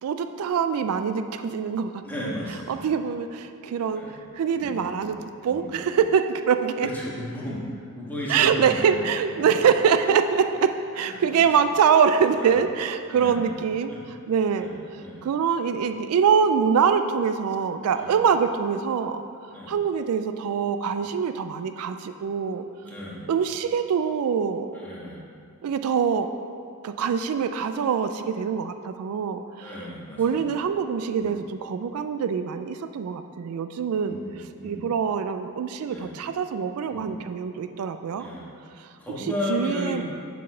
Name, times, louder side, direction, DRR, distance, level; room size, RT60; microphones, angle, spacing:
voice 1, 0.0-2.3 2.7-6.9 8.3-13.9 14.3-19.2 19.7-22.6 23.3-24.7 25.6-26.3 26.8-29.8 30.2-34.2 34.6-38.3 38.8-40.0, right 7 dB, 75° right, 9 dB, 0.3 m, -24 dB
voice 2, 2.0-2.9 3.9-4.1 4.6-5.1 5.5-6.0 6.8-9.1 9.4-9.5 11.0-11.5 12.3-12.5 13.1-13.5 13.9-14.0 14.6-15.3 17.9-18.2 19.5-19.7 20.9-21.1 22.8-23.2 24.7-25.2 29.6-30.4 31.1-31.4 33.9-34.8 35.9-36.1 36.8-37.1 38.1-38.5 39.0-40.0, equal, 10° left, -7 dB, 1.5 m, -35 dB
7.4 x 4.2 x 5.5 m, 2.4 s
head